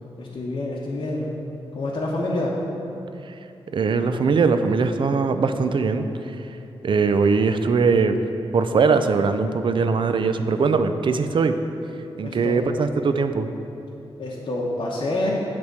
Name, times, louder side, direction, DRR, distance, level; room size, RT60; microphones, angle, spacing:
voice 1, 0.2-1.3 1.7-2.5 12.2-12.6 14.2-15.4, left 2 dB, 50° left, -5 dB, 1.0 m, -27 dB
voice 2, 3.7-6.1 6.8-8.2 8.5-11.6 12.2-13.5, right 4 dB, 55° right, 9 dB, 0.4 m, -21 dB
7.8 x 3.6 x 6.6 m, 2.9 s
cardioid pair, 75°, 10 cm